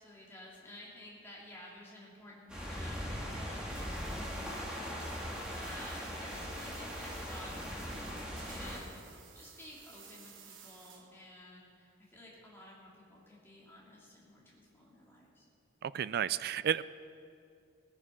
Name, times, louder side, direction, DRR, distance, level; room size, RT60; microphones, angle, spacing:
voice 1, 0.0-15.5, left 1 dB, 10° left, -5 dB, 2.9 m, -53 dB
sound 1, 2.5-8.8, equal, 5° right, 2.0 m, -40 dB
sound 2, 3.7-11.2, right 7 dB, 70° right, 1.5 m, -56 dB
voice 2, 15.8-16.8, right 9 dB, 50° right, 17 dB, 0.3 m, -32 dB
17.5 x 9.7 x 5.8 m, 2.4 s
head